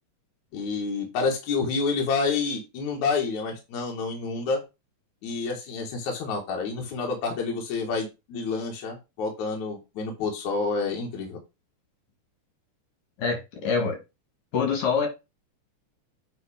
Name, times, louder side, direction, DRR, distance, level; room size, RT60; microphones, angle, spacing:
voice 1, 0.5-4.6 5.2-11.4, left 4 dB, 70° left, 3.0 m, -28 dB
voice 2, 13.2-14.0 14.5-15.1, left 5 dB, 85° left, 3.6 m, -25 dB
9.3 x 3.3 x 5.0 m
omnidirectional pair, 3.5 m